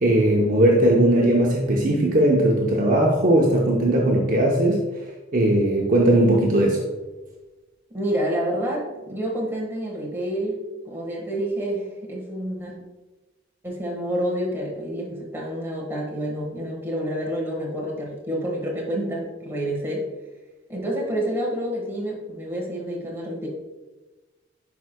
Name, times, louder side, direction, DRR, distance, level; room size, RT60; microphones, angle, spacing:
voice 1, 0.0-4.8 5.3-6.8, right 1 dB, 45° right, -2 dB, 0.7 m, -18 dB
voice 2, 7.9-10.6 10.8-12.7 13.6-20.0 20.7-23.5, equal, 10° right, -4 dB, 1.4 m, -28 dB
10.5 x 4.7 x 2.2 m, 1.2 s
head